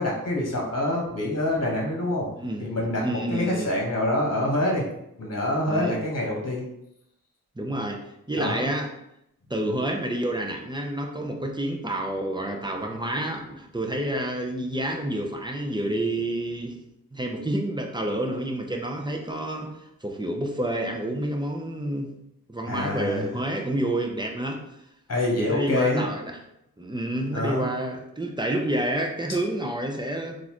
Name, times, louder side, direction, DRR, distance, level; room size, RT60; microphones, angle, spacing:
voice 1, 0.0-2.3 2.6-4.9 5.2-6.6 8.4-8.7 22.7-23.3 25.1-26.1 27.3-27.6, left 1 dB, 45° left, -2 dB, 1.2 m, -26 dB
voice 2, 2.4-3.7 5.7-6.0 7.6-8.0 8.3-8.9 9.5-16.8 17.1-22.1 22.5-24.6 25.5-26.4 26.8-30.4, right 1 dB, 15° right, 1 dB, 0.6 m, -29 dB
3.8 x 2.6 x 3.0 m, 0.80 s
cardioid pair, 40°, 36 cm